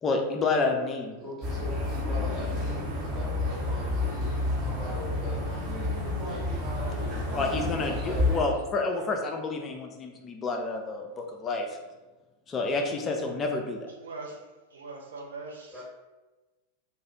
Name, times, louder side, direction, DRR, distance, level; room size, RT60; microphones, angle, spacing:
voice 1, 0.0-1.1 7.3-11.8 12.5-13.9, left 3 dB, 25° left, 3 dB, 0.4 m, -29 dB
voice 2, 1.2-5.7 6.2-8.4 15.7-15.8, equal, 5° right, -10 dB, 0.9 m, -43 dB
sound 1, 1.4-8.4, left 2 dB, 30° right, 0.8 m, -30 dB
voice 3, 14.0-15.8, right 3 dB, 65° right, 1 dB, 0.4 m, -42 dB
2.3 x 2.1 x 2.8 m, 1.2 s
figure-of-eight pair, 90°, 0 cm